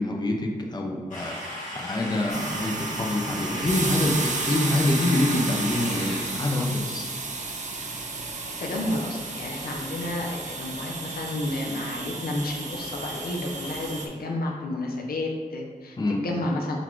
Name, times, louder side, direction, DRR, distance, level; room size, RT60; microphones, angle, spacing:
voice 1, 0.0-7.1 16.0-16.2, left 1 dB, 30° left, 1 dB, 0.5 m, -26 dB
sound 1, 1.1-6.8, left 1 dB, 55° left, 1.4 m, -36 dB
sound 2, 2.3-14.1, right 3 dB, 50° right, 0.6 m, -33 dB
voice 2, 8.6-16.8, left 1 dB, 85° left, 0 dB, 0.6 m, -31 dB
4.1 x 2.3 x 4.4 m, 1.5 s
cardioid pair, 70°, 15 cm